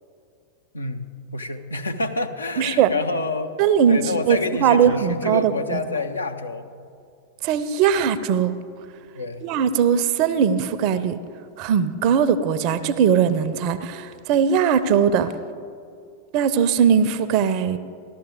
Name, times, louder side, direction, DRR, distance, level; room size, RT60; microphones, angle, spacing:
voice 1, 0.7-3.5 3.9-6.7 9.1-9.5, left 3 dB, 75° left, 6 dB, 0.6 m, -28 dB
voice 2, 2.6-2.9 3.6-5.8 7.4-8.5 9.4-11.2 11.6-15.3 16.3-17.8, right 7 dB, 45° right, 13 dB, 0.5 m, -20 dB
14.0 x 12.0 x 3.6 m, 2.4 s
figure-of-eight pair, 90°, 0 cm